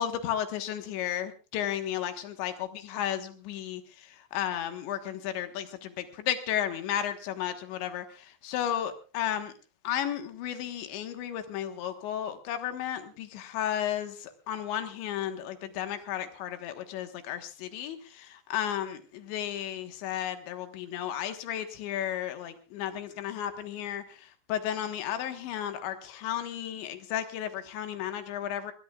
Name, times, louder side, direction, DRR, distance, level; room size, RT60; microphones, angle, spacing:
voice 1, 0.0-2.5 2.9-9.5 9.8-28.7, left 10 dB, 80° left, 8 dB, 3.7 m, -33 dB
22.0 x 20.0 x 2.4 m, 0.36 s
omnidirectional pair, 5.1 m